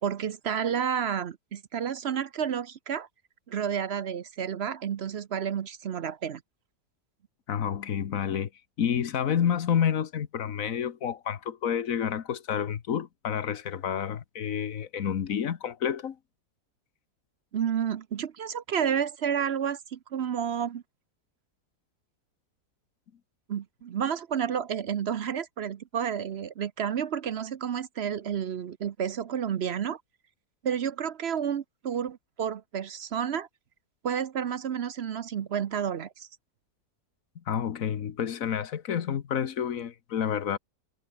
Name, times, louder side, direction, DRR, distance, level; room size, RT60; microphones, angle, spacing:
voice 1, 0.0-3.1 3.5-6.4 17.5-20.8 23.5-30.0 30.6-33.5 34.0-36.3, right 8 dB, 55° right, 0.8 m, -30 dB
voice 2, 7.5-8.5 8.8-16.2 37.5-40.6, left 8 dB, 60° left, 1.5 m, -29 dB
omnidirectional pair, 1.7 m